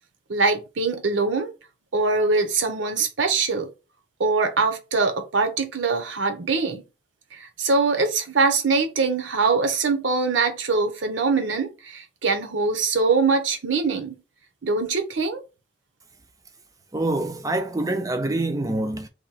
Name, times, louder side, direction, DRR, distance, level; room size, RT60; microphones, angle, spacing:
voice 1, 0.3-1.5 1.9-3.7 4.2-6.8 7.3-14.1 14.6-15.4, right 4 dB, 75° right, 0.7 m, -23 dB
voice 2, 16.9-19.1, right 2 dB, 20° right, 0.4 m, -25 dB
2.9 x 2.7 x 4.0 m
head